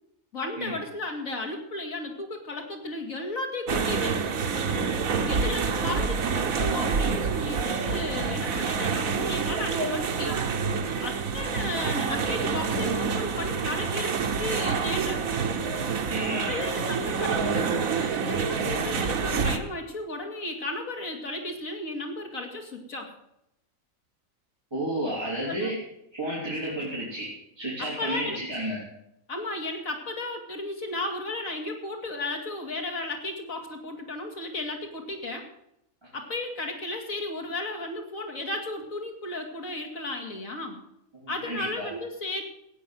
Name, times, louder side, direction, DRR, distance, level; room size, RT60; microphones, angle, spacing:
voice 1, 0.3-4.2 5.3-10.4 11.0-15.2 16.5-17.7 18.2-23.1 25.5-25.7 27.8-28.4 29.3-35.5 36.1-40.8 41.3-42.4, left 2 dB, 75° left, 2 dB, 3.1 m, -34 dB
sound 1, 3.7-19.6, right 5 dB, 85° right, 1.6 m, -27 dB
voice 2, 16.1-16.5 24.7-25.8 26.1-27.3 27.6-28.8 36.0-36.1 41.2-41.9, right 1 dB, 20° right, -6 dB, 3.9 m, -31 dB
15.0 x 9.6 x 7.8 m, 0.81 s
omnidirectional pair, 1.4 m